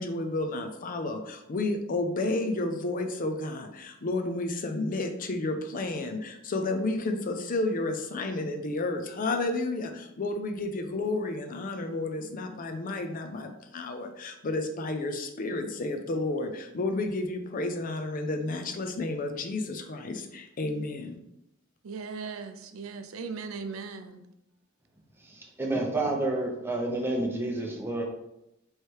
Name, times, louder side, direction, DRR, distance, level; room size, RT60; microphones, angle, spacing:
voice 1, 0.0-21.2, left 2 dB, 40° left, 6 dB, 0.5 m, -31 dB
voice 2, 21.8-24.2, right 5 dB, 85° right, 8 dB, 0.4 m, -38 dB
voice 3, 25.6-28.0, right 2 dB, 10° right, 0 dB, 0.7 m, -29 dB
3.2 x 3.2 x 4.5 m, 0.85 s
head